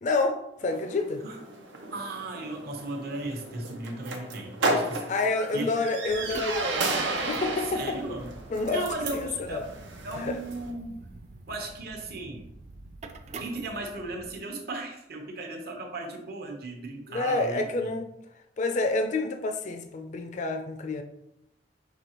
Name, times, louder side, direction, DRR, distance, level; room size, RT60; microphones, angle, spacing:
voice 1, 0.0-1.2 5.1-6.9 7.1-7.9 8.5-8.8 9.1-9.6 10.2-10.4 17.1-18.0 18.6-21.0, left 3 dB, 40° left, 0.4 m, -28 dB
sound 1, 0.6-10.7, right 2 dB, 90° right, 0.7 m, -33 dB
voice 2, 1.8-5.1 5.5-5.7 7.6-8.3 8.7-9.7 10.0-11.0 11.5-12.5 13.4-17.9, right 2 dB, 55° right, 0.9 m, -36 dB
sound 2, 6.1-14.3, right 3 dB, 40° right, 0.3 m, -46 dB
6.0 x 2.8 x 2.9 m
head